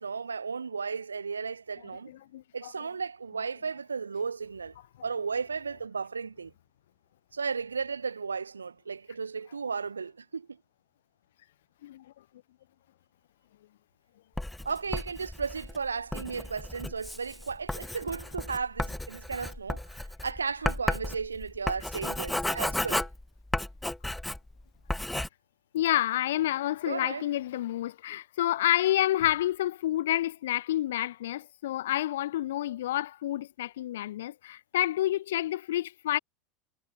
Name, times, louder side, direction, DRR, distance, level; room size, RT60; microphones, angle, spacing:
voice 1, 0.0-2.1 2.5-4.7 5.0-6.5 7.3-10.6 14.6-23.1 26.8-27.3, right 5 dB, 90° right, 1.1 m, -34 dB
voice 2, 2.1-2.7 11.8-12.0 25.7-36.2, left 13 dB, 70° left, 1.4 m, -29 dB
Writing, 14.4-24.6 24.9-25.3, left 1 dB, 5° left, 0.4 m, -34 dB
hypercardioid pair, 85°, 0 cm